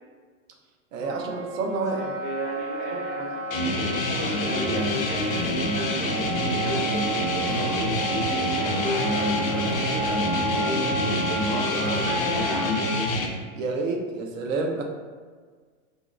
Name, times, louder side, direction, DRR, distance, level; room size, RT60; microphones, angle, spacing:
voice 1, 0.9-2.1 2.9-3.0 13.6-14.8, right 3 dB, 75° right, 1 dB, 0.7 m, -29 dB
Wind instrument woodwind instrument, 1.0-13.1, right 3 dB, 45° right, 0.8 m, -32 dB
voice 2, 1.9-3.4 4.0-8.0 8.3-12.7, right 1 dB, 15° right, -11 dB, 0.4 m, -36 dB
sound 1, 3.5-13.3, left 2 dB, 85° left, 0.6 m, -27 dB
sound 2, 3.7-12.4, left 2 dB, 50° left, 0.5 m, -37 dB
3.0 x 2.6 x 2.3 m, 1.5 s
supercardioid pair, 180°, 39 cm